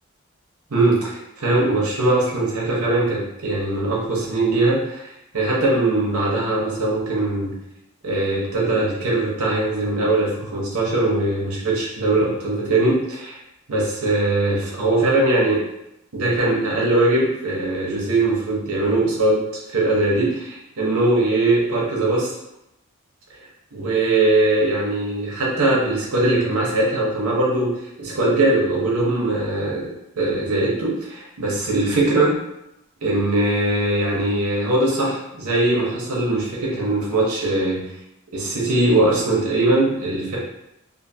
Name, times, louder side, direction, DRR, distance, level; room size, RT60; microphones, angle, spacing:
voice 1, 0.7-7.5 8.0-13.4 13.7-15.6 16.1-19.4 19.7-22.3 23.7-27.7 28.0-32.4 33.0-37.8 38.3-40.4, right 2 dB, 85° right, -4 dB, 0.8 m, -21 dB
2.6 x 2.4 x 2.6 m, 0.84 s
head